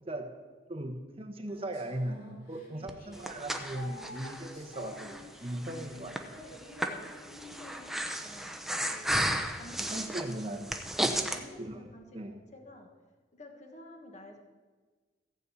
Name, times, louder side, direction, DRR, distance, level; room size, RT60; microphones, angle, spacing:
voice 1, 0.0-0.3 0.7-6.2 9.8-10.8 11.6-11.8 12.1-12.4, right 1 dB, 35° right, 5 dB, 1.2 m, -38 dB
sound 1, 1.5-8.8, left 1 dB, 55° left, 3.2 m, -51 dB
Breathing, 2.9-11.4, right 1 dB, ahead, 0.8 m, -34 dB
voice 2, 6.4-8.6 8.9-10.0 11.1-12.9 13.3-14.4, left 1 dB, 40° left, 3 dB, 1.6 m, -52 dB
15.0 x 5.5 x 8.2 m, 1.4 s
head